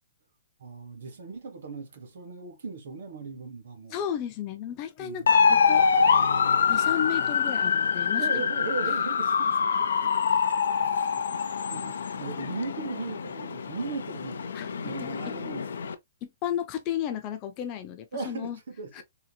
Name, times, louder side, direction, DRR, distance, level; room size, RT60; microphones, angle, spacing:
voice 1, 0.6-4.0 5.0-5.3 8.2-10.1 10.5-10.6 11.1-14.4 14.8-15.7 18.1-19.0, right 4 dB, 60° right, 1.1 m, -38 dB
voice 2, 3.9-5.9 6.7-8.4 14.5-15.1 16.2-18.6 18.9-19.0, left 10 dB, 20° left, 0.4 m, -33 dB
sound 1, 5.3-15.9, left 6 dB, 90° left, 0.5 m, -25 dB
3.8 x 2.8 x 2.2 m
hypercardioid pair, 180°, 0 cm